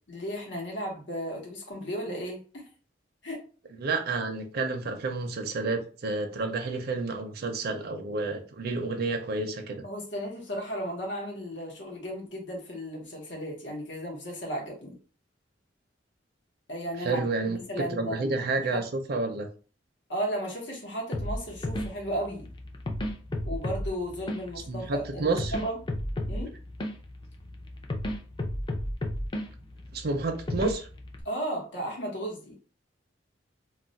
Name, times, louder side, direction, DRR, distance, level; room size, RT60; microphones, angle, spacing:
voice 1, 0.1-2.7 3.2-3.5 9.8-15.0 16.7-18.4 18.7-18.8 20.1-22.5 23.5-25.8 26.3-26.5 31.2-32.6, equal, 75° left, 0.9 m, -35 dB
voice 2, 3.8-9.8 17.0-19.5 24.7-25.6 29.9-30.9, right 3 dB, 60° right, 0.5 m, -30 dB
sound 1, 21.1-31.2, left 1 dB, 25° left, 0.4 m, -34 dB
2.3 x 2.1 x 3.9 m
head